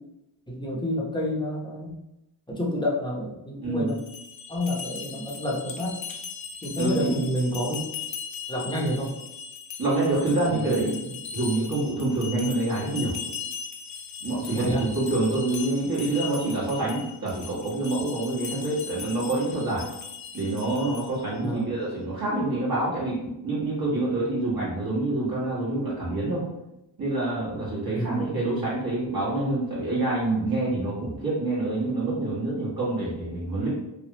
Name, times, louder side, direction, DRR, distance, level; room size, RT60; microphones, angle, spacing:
voice 1, 0.5-1.9 2.5-4.0 4.5-5.9 6.6-7.8 8.5-9.1 10.5-11.1 14.5-14.8 21.4-21.8 27.9-28.6, equal, 10° left, -4 dB, 0.9 m, -29 dB
voice 2, 3.6-3.9 6.8-7.1 9.8-10.9 11.3-13.1 14.2-19.8 20.3-26.4 27.0-33.7, right 2 dB, 45° right, -8 dB, 1.5 m, -27 dB
sound 1, 3.9-21.3, left 6 dB, 75° left, 0.6 m, -38 dB
3.2 x 2.4 x 2.9 m, 0.88 s
cardioid pair, 75°, 48 cm